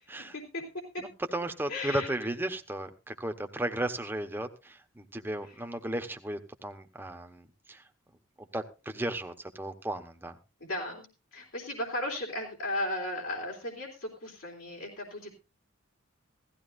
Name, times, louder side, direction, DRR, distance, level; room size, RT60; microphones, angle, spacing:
voice 1, 0.2-1.0 1.7-2.1 10.6-15.3, left 1 dB, 80° left, -3 dB, 3.3 m, -36 dB
voice 2, 1.0-7.8 8.4-10.4, right 1 dB, 10° right, 6 dB, 1.0 m, -35 dB
17.0 x 14.5 x 2.6 m, 0.28 s
head